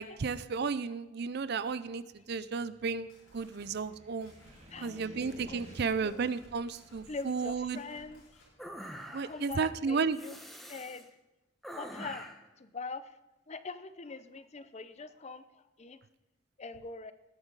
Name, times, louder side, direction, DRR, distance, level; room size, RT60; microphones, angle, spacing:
voice 1, 0.0-4.3 4.8-7.8 9.1-10.2, right 5 dB, 55° right, 15 dB, 0.5 m, -33 dB
Car, 1.2-9.4, equal, 35° right, 1.9 m, -55 dB
sound 1, 3.0-8.5, left 1 dB, 85° left, 4.7 m, -60 dB
voice 2, 4.7-5.6 6.0-6.3 7.1-8.4 9.2-10.4 10.7-11.1 11.7-12.3 12.6-13.2 13.5-16.0 16.6-17.1, left 4 dB, 35° left, 13 dB, 0.6 m, -43 dB
sound 2, 8.6-9.5 10.1-11.0 11.6-12.5, equal, ahead, 1.2 m, -45 dB
19.5 x 8.8 x 4.0 m, 1.0 s
head